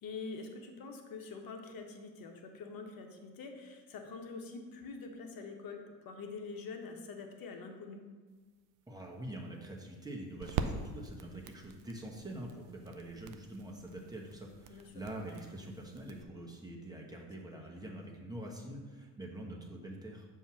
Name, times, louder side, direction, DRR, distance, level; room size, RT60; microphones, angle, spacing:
voice 1, 0.0-8.1 14.7-14.9 17.5-17.6 18.7-18.8, left 4 dB, 45° left, 3 dB, 1.1 m, -45 dB
sound 1, 8.3-16.2, right 6 dB, 40° right, 0.6 m, -44 dB
voice 2, 8.9-20.3, right 1 dB, 10° right, -1 dB, 1.2 m, -45 dB
7.0 x 2.8 x 5.9 m, 1.4 s
hypercardioid pair, 60°, 50 cm